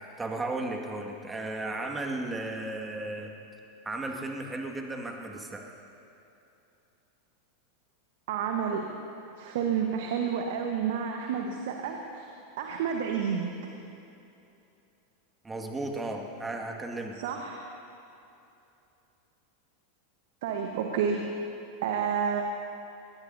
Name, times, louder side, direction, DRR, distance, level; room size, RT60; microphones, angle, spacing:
voice 1, 0.2-3.3 3.8-5.6 15.4-17.2, right 2 dB, 15° right, 2 dB, 1.9 m, -35 dB
voice 2, 8.3-8.9 9.4-12.3 12.6-13.7 17.2-17.7 20.4-21.3 21.8-22.4, right 7 dB, 60° right, 3 dB, 1.2 m, -30 dB
22.5 x 20.5 x 2.8 m, 2.8 s
figure-of-eight pair, 90°, 0 cm